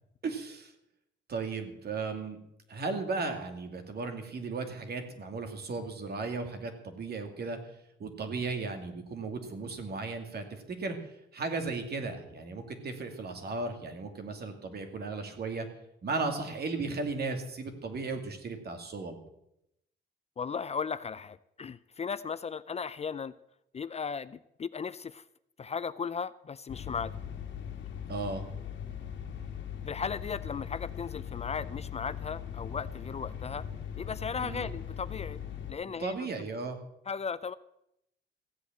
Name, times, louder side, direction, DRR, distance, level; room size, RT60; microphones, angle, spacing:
voice 1, 0.2-0.7 1.3-2.4 2.7-7.6 8.0-11.0 11.3-15.7 16.0-19.2 28.1-28.4 34.4-34.7 36.0-36.8, right 3 dB, 55° right, 5 dB, 2.4 m, -35 dB
voice 2, 20.4-23.3 23.7-25.2 25.6-27.1 29.8-33.7 34.0-35.4 35.7-36.1 37.1-37.5, left 6 dB, 30° left, 15 dB, 0.4 m, -36 dB
sound 1, 26.7-35.7, left 8 dB, 65° left, 1.7 m, -40 dB
15.5 x 8.3 x 7.4 m, 0.80 s
cardioid pair, 105°, 20 cm